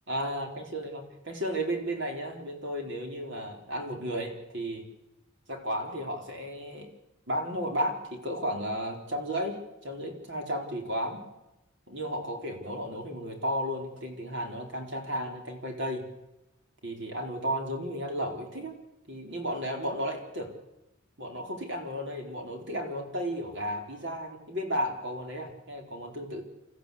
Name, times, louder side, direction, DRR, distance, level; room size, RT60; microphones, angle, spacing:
voice 1, 0.1-4.9 5.5-6.9 7.3-11.2 11.9-16.1 16.8-18.8 19.1-20.5 21.2-26.4, equal, 60° right, 3 dB, 4.2 m, -33 dB
28.5 x 14.0 x 8.4 m, 0.94 s
head